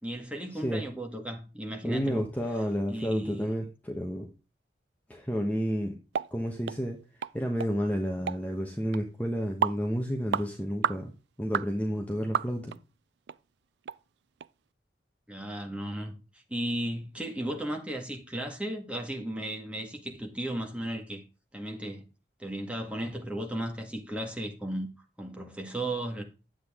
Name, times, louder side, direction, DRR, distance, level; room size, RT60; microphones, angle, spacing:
voice 1, 0.0-2.3 2.9-3.5 15.3-16.1 16.5-21.2 21.5-22.0 22.4-24.9 25.2-26.2, right 1 dB, 5° right, 1.6 m, -35 dB
voice 2, 0.5-0.8 1.8-4.3 5.1-6.0 6.3-7.0 7.3-11.1 11.4-12.7, equal, 10° left, 1.1 m, -31 dB
sound 1, 6.1-6.3 6.7-6.8 7.2-7.3 7.6-7.7 8.3-8.4 8.9-9.0 9.6-9.8 10.3-10.5 10.8-11.0 11.5-11.7 12.3-12.8 13.3-13.4 13.9-14.0 14.4-14.5, right 7 dB, 75° right, 0.4 m, -30 dB
10.0 x 8.1 x 3.6 m
head